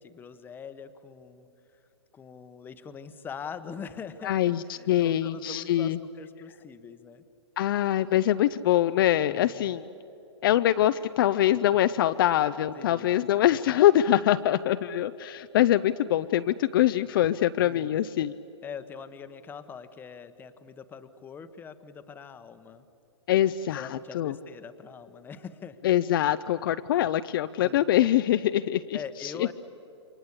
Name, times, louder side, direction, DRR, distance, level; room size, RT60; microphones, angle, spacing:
voice 1, 0.0-1.5 2.1-7.2 9.3-9.7 12.7-13.2 17.6-18.0 18.6-22.9 23.7-25.8 27.6-27.9 28.9-29.5, left 6 dB, 15° left, 10 dB, 1.1 m, -43 dB
voice 2, 4.2-6.0 7.6-9.9 10.4-18.3 23.3-24.3 25.8-29.0 29.4-29.5, left 12 dB, 50° left, 11 dB, 0.6 m, -24 dB
29.0 x 24.5 x 8.3 m, 2.9 s
hypercardioid pair, 135°, 15 cm